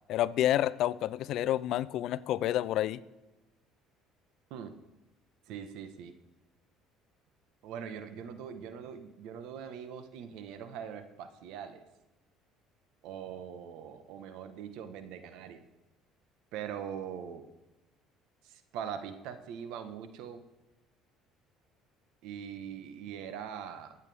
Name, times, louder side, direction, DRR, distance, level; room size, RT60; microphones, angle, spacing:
voice 1, 0.1-3.0, left 13 dB, 65° left, 18 dB, 0.5 m, -29 dB
voice 2, 5.5-6.1 7.6-11.9 13.0-15.6 16.5-17.4 18.4-20.4 22.2-24.0, right 8 dB, 75° right, 9 dB, 1.2 m, -42 dB
23.0 x 8.3 x 3.5 m, 1.0 s
supercardioid pair, 100°, 0 cm